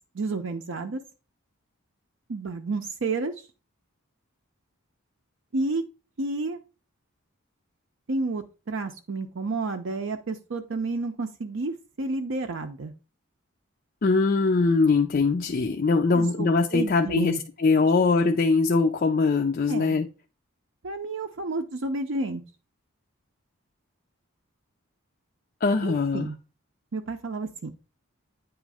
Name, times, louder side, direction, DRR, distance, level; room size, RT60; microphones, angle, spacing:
voice 1, 0.1-1.0 2.3-3.4 5.5-5.9 6.2-6.6 8.1-12.9 16.1-17.4 19.7-20.0 20.8-22.4 25.8-26.4 26.9-27.7, right 3 dB, 60° right, 0.5 m, -30 dB
voice 2, 14.0-20.1 25.6-26.3, left 4 dB, 40° left, 0.4 m, -22 dB
9.0 x 3.1 x 4.8 m
head